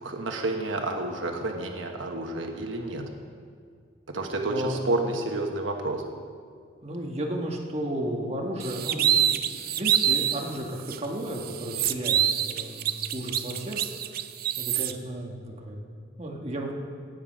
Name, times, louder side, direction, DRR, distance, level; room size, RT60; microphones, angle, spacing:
voice 1, 0.0-3.1 4.1-6.0, right 2 dB, 85° right, 3 dB, 1.1 m, -30 dB
voice 2, 6.8-13.8 14.6-16.7, right 1 dB, 35° right, -1 dB, 1.4 m, -34 dB
sound 1, 8.6-10.4 10.9-11.0 11.3-14.9, right 10 dB, 50° right, 0.5 m, -26 dB
17.5 x 7.5 x 5.2 m, 2.1 s
head